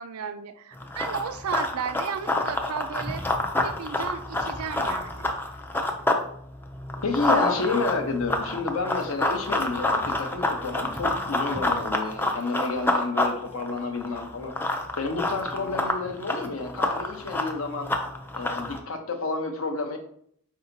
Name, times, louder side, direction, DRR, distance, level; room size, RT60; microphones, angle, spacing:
voice 1, 0.0-3.2 3.6-5.3, right 7 dB, 75° right, 10 dB, 0.4 m, -34 dB
Run, 0.8-6.2 6.6-18.8, left 2 dB, 10° left, 0.3 m, -28 dB
voice 2, 7.0-17.9 18.3-20.0, left 3 dB, 65° left, 4 dB, 0.7 m, -30 dB
4.4 x 2.7 x 3.9 m, 0.65 s
head